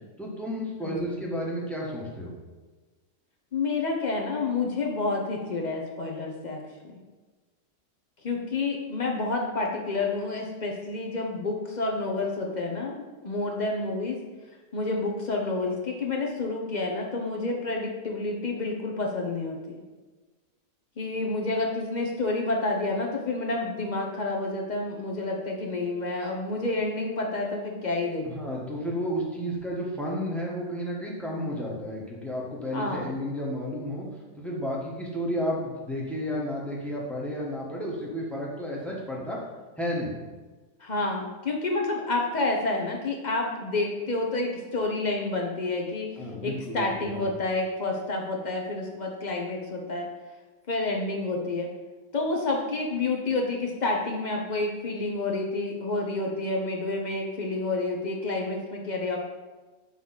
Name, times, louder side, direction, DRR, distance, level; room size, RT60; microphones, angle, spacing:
voice 1, 0.2-2.3 28.3-34.1 34.4-39.4 39.8-40.1 46.2-47.2, equal, ahead, -3 dB, 0.9 m, -32 dB
voice 2, 0.8-1.1 3.5-7.0 8.2-14.2 14.7-19.8 21.0-28.3 32.7-33.1 40.8-46.1 46.4-50.1 50.7-51.7 52.1-59.2, left 3 dB, 45° left, 0 dB, 0.6 m, -29 dB
5.7 x 3.0 x 5.6 m, 1.3 s
omnidirectional pair, 1.5 m